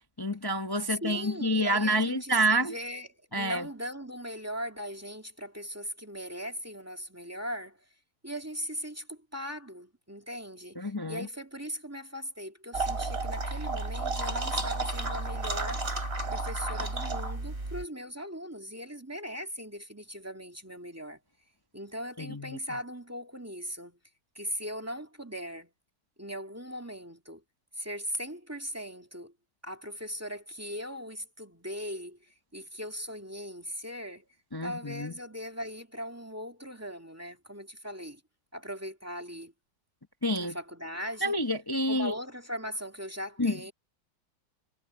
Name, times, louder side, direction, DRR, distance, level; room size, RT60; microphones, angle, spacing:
voice 1, 0.2-2.7 3.3-3.6 10.8-11.3 22.2-22.6 34.5-35.1 40.2-40.6 41.2-42.1 43.4-43.5, equal, 15° left, 0.7 m, -28 dB
voice 2, 0.9-7.8 8.2-15.9 16.3-21.2 21.7-24.0 24.3-25.7 26.2-27.4 27.7-29.3 29.6-34.3 34.6-38.2 38.5-39.5 40.4-41.3 41.9-43.7, equal, 10° right, 2.0 m, -39 dB
sound 1, 12.7-17.8, right 2 dB, 30° right, 3.6 m, -32 dB
omnidirectional pair, 2.1 m